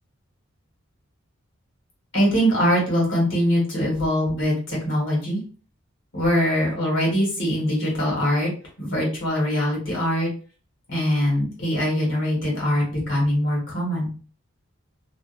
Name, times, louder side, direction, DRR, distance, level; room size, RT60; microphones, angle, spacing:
voice 1, 2.1-5.4 6.1-8.5 8.8-10.3 10.9-14.1, equal, 60° left, -4 dB, 1.3 m, -22 dB
2.5 x 2.4 x 2.5 m, 0.38 s
head